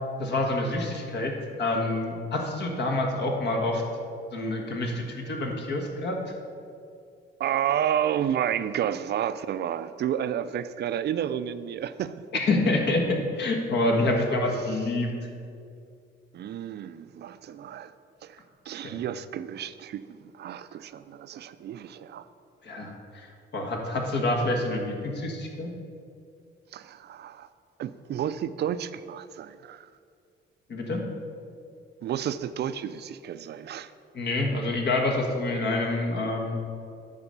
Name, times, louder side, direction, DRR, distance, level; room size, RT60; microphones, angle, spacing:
voice 1, 0.2-1.3 1.6-3.8 4.3-6.3 12.3-15.1 18.8-18.9 22.6-25.7 30.7-31.0 34.1-36.6, left 2 dB, 60° left, 1 dB, 1.5 m, -27 dB
voice 2, 7.4-12.2 14.0-14.2 16.3-17.9 18.2-22.3 22.8-22.9 26.7-27.5 27.8-29.9 32.0-33.9, right 10 dB, 60° right, 13 dB, 0.4 m, -31 dB
9.8 x 4.2 x 6.7 m, 2.3 s
cardioid pair, 110°, 20 cm